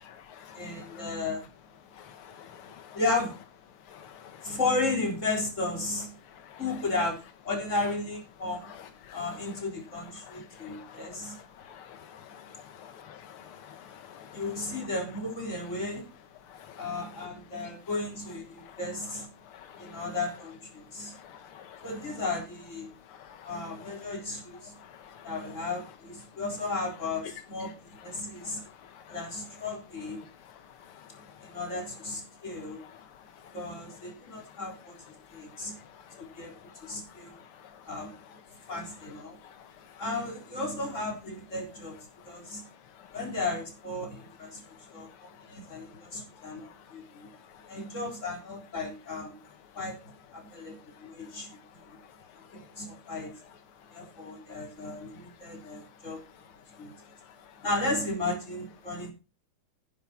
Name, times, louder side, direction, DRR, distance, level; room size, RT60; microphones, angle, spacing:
voice 1, 0.0-1.1 1.8-3.0 3.7-4.6 6.2-6.6 8.6-9.6 10.2-14.9 16.5-17.3 17.6-17.7 18.5-18.8 19.1-20.2 20.8-22.2 22.9-24.1 24.6-25.7 26.2-26.4 28.0-29.3 30.2-31.6 32.3-33.6 34.0-34.6 35.1-40.0 42.1-43.2 44.5-47.8 49.7-49.8 50.5-53.1 53.7-57.6 58.9-59.1, left 9 dB, 85° left, 1.9 m, -52 dB
voice 2, 0.5-1.5 2.9-3.3 4.4-6.2 6.6-7.2 7.4-8.7 9.1-11.4 14.3-16.1 16.7-19.3 19.8-21.1 21.8-22.9 23.5-24.8 25.2-28.6 29.1-30.2 31.4-32.8 33.5-35.0 35.3-35.8 36.2-36.6 36.8-37.4 37.9-38.1 38.7-39.4 40.0-42.0 42.2-42.6 43.1-47.3 47.7-49.4 49.7-51.6 51.9-52.0 52.5-53.3 53.9-56.2 56.7-57.0 57.6-59.1, left 2 dB, 35° left, 4.3 m, -34 dB
10.5 x 9.9 x 4.4 m
omnidirectional pair, 2.3 m